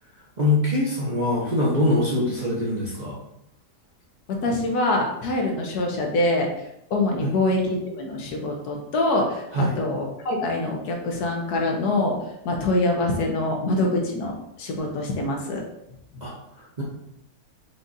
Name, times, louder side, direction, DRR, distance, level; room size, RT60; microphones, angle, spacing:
voice 1, 0.4-3.2 7.2-7.3 9.5-9.8 16.2-16.8, left 1 dB, 40° right, -6 dB, 0.7 m, -23 dB
voice 2, 4.3-6.5 6.9-12.2 12.4-15.6, left 2 dB, 70° left, 1 dB, 1.4 m, -24 dB
5.2 x 2.4 x 4.0 m, 0.79 s
omnidirectional pair, 1.7 m